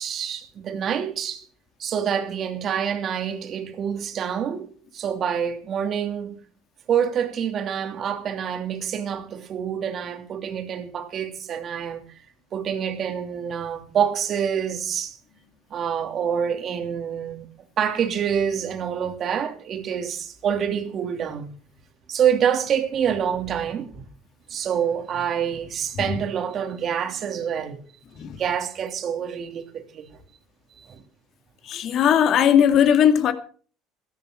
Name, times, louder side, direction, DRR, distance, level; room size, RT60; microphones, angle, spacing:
voice 1, 0.0-1.4 1.8-6.4 6.9-12.0 12.5-15.2 15.7-17.5 17.8-21.5 22.1-24.0 24.5-27.8 28.3-30.2 30.9-31.0, right 8 dB, 50° right, 3.1 m, -26 dB
voice 2, 31.7-33.3, left 9 dB, 55° left, 2.4 m, -18 dB
16.5 x 14.0 x 4.6 m
hypercardioid pair, 70°, 0 cm